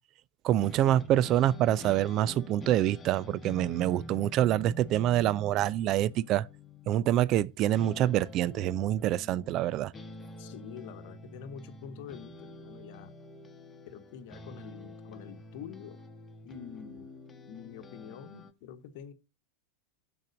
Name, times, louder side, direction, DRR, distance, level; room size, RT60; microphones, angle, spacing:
voice 1, 0.4-6.5 6.9-9.9, right 12 dB, 35° right, 0.4 m, -26 dB
sound 1, 0.6-7.5 7.8-18.5, left 1 dB, 15° left, 1.3 m, -47 dB
voice 2, 10.4-13.1 13.9-16.0 16.4-17.2 17.5-19.1, left 8 dB, 50° left, 1.1 m, -46 dB
7.1 x 6.5 x 6.1 m
figure-of-eight pair, 90°, 0 cm